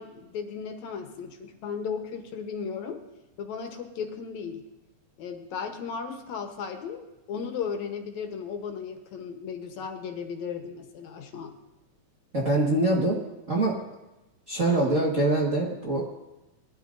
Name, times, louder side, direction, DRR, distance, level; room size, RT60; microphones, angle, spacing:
voice 1, 0.0-3.0 3.4-4.7 5.2-11.6, left 6 dB, 75° left, 5 dB, 2.3 m, -35 dB
voice 2, 12.3-13.2 13.5-13.8 14.5-16.2, right 2 dB, 35° right, -5 dB, 1.4 m, -24 dB
20.5 x 12.0 x 2.6 m, 0.98 s
omnidirectional pair, 3.4 m